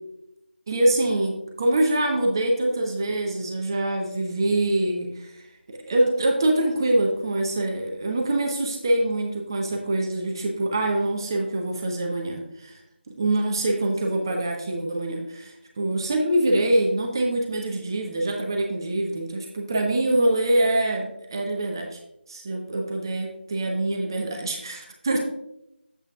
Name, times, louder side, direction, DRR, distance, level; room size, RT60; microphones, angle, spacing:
voice 1, 0.7-5.4 5.7-12.8 13.1-22.0 22.3-25.2, right 1 dB, 20° right, 0 dB, 0.7 m, -24 dB
8.7 x 7.7 x 2.4 m, 0.84 s
figure-of-eight pair, 165°, 6 cm